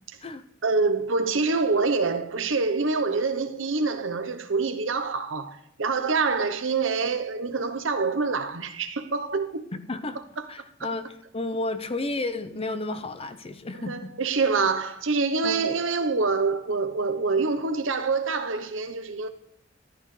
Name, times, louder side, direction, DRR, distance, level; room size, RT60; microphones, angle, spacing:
voice 1, 0.6-9.7 10.4-10.5 10.8-10.9 13.9-19.3, right 4 dB, 75° right, 0.9 m, -26 dB
voice 2, 9.7-10.2 10.5-14.2 15.4-15.7, left 2 dB, 30° left, 0.7 m, -32 dB
14.0 x 11.5 x 3.3 m
head